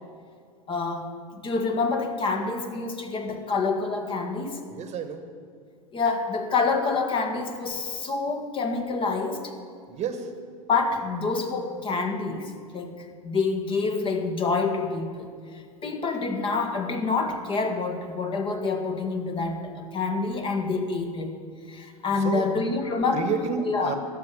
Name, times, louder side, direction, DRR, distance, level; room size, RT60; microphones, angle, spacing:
voice 1, 0.7-4.6 5.9-9.5 10.7-21.3 21.7-23.3 23.6-24.0, left 4 dB, 30° left, 5 dB, 1.5 m, -27 dB
voice 2, 4.7-5.2 9.9-10.3 22.2-22.5 23.1-24.0, right 6 dB, 35° right, 8 dB, 1.3 m, -30 dB
12.5 x 6.5 x 9.5 m, 2.2 s
hypercardioid pair, 95°, 18 cm